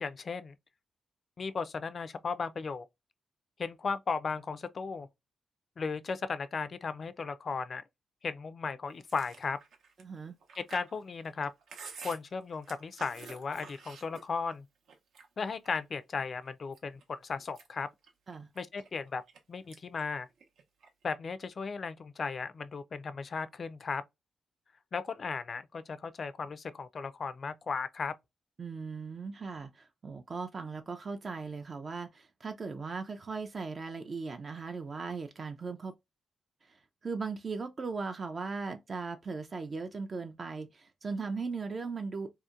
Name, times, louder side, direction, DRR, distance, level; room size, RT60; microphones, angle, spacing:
voice 1, 0.0-0.6 1.4-2.9 3.6-5.1 5.8-7.8 8.2-9.6 10.6-11.5 12.0-14.7 15.4-17.9 18.6-19.2 19.5-20.3 21.0-24.0 24.9-28.1, left 5 dB, 50° left, 0.3 m, -36 dB
Chewing mastication, 9.0-14.5 14.9-16.0 16.4-17.0 17.4-19.4 19.7-20.0 20.3-21.1, right 5 dB, 85° right, 0.7 m, -50 dB
voice 2, 10.0-10.3 18.3-18.5 28.6-35.9 36.6-42.3, right 4 dB, 45° right, 0.3 m, -38 dB
2.7 x 2.1 x 2.3 m
cardioid pair, 85°, 0 cm